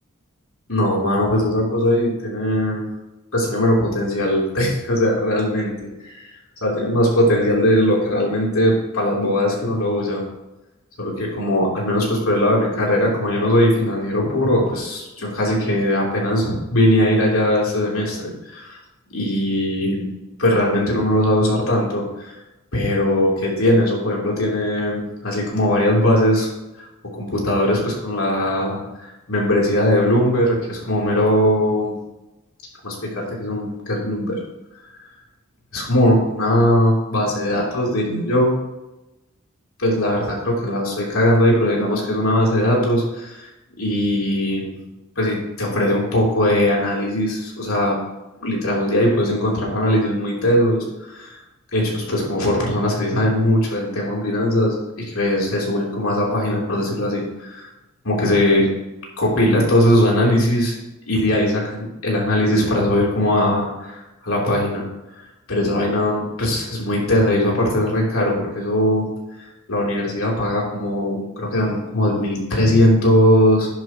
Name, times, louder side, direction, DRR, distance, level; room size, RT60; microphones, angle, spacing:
voice 1, 0.7-2.8 3.3-6.2 6.6-10.2 11.0-18.8 19.1-20.1 20.4-22.3 22.7-26.5 26.8-26.9 27.1-31.9 32.8-34.4 35.7-38.5 39.8-43.5 43.8-44.8 45.2-48.0 48.4-51.4 51.7-57.7 58.0-58.7 59.2-60.8 61.1-64.9 65.5-69.1 69.4-73.7, left 1 dB, 75° left, -3 dB, 3.4 m, -20 dB
11.5 x 10.5 x 3.0 m, 1.0 s
head